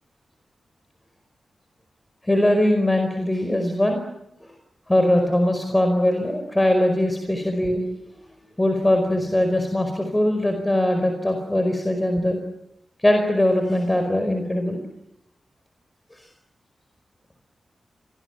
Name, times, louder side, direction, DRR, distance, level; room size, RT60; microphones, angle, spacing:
voice 1, 2.2-4.0 4.4-4.5 4.9-7.8 8.6-12.4 13.0-14.8 16.1-16.3, left 1 dB, 15° left, 5 dB, 5.0 m, -21 dB
26.0 x 19.5 x 9.4 m, 0.83 s
cardioid pair, 60°, 0 cm